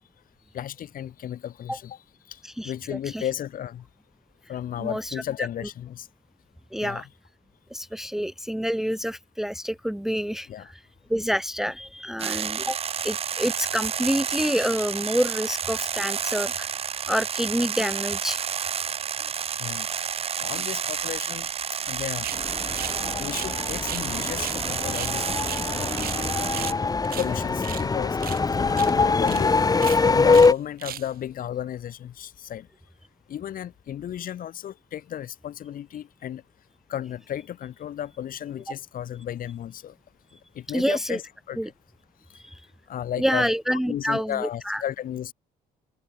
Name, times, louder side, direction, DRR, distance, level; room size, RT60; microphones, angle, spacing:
voice 1, 0.5-2.0 2.3-3.8 4.5-6.1 6.8-7.0 10.5-10.7 14.3-14.7 19.6-19.9 20.4-21.5 21.8-22.3 23.2-25.4 25.7-25.9 27.2-28.2 28.5-29.6 30.0-32.7 33.3-36.4 36.9-39.9 40.5-41.7 42.9-45.3, left 10 dB, 55° left, 4.1 m, -34 dB
voice 2, 2.4-3.2 4.8-5.5 6.7-7.1 7.7-10.5 11.1-12.8 13.0-16.7 17.1-18.4 26.2-26.3 40.7-41.2 41.6-41.7 42.4-42.6 43.2-44.8, equal, ahead, 1.0 m, -27 dB
sound 1, 12.2-26.7, right 8 dB, 35° right, 0.8 m, -30 dB
sound 2, 22.2-22.4 22.8-23.0 23.2-24.1 24.4-24.6 24.9-26.2 26.5-26.8 27.0-27.9 28.2-28.4 28.7-28.9 29.2-29.4 29.7-30.5 30.8-31.1, right 12 dB, 60° right, 3.4 m, -37 dB
sound 3, 22.3-30.5, left 4 dB, 20° left, 2.4 m, -23 dB
open air
cardioid pair, 110°, 17 cm